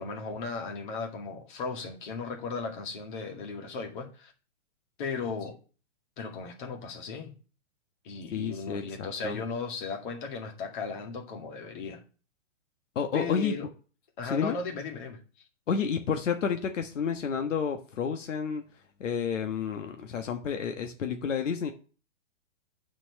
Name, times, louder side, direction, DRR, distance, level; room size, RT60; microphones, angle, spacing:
voice 1, 0.0-4.3 5.0-5.6 6.2-7.3 8.0-12.0 13.1-13.7 14.2-15.2, left 4 dB, 40° left, 2 dB, 2.1 m, -36 dB
voice 2, 8.3-9.4 12.9-13.5 14.2-14.6 15.7-18.6 19.0-21.7, left 6 dB, 80° left, 5 dB, 1.3 m, -30 dB
9.0 x 4.6 x 7.2 m, 0.37 s
hypercardioid pair, 170°, 37 cm